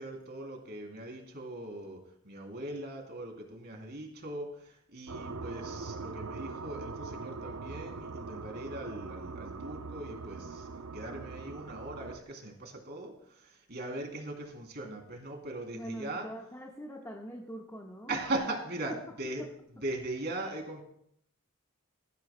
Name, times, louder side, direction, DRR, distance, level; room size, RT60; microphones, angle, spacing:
voice 1, 0.0-10.7 10.9-16.3 18.1-19.4 19.8-20.8, right 2 dB, 50° right, 2 dB, 3.1 m, -39 dB
sound 1, 5.1-12.2, right 4 dB, 80° right, 0.7 m, -42 dB
voice 2, 15.7-18.2, equal, 15° left, -1 dB, 1.4 m, -43 dB
19.0 x 14.0 x 2.2 m, 0.71 s
head